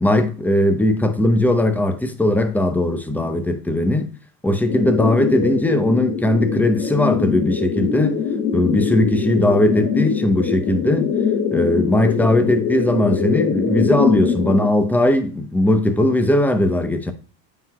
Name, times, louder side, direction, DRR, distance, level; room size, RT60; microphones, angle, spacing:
voice 1, 0.0-4.1 4.4-8.2 8.5-11.1 11.5-17.1, left 1 dB, 5° left, 0.7 m, -19 dB
sound 1, 4.7-14.7, left 6 dB, 40° left, 2.6 m, -23 dB
9.1 x 4.8 x 2.2 m
hypercardioid pair, 105°, 49 cm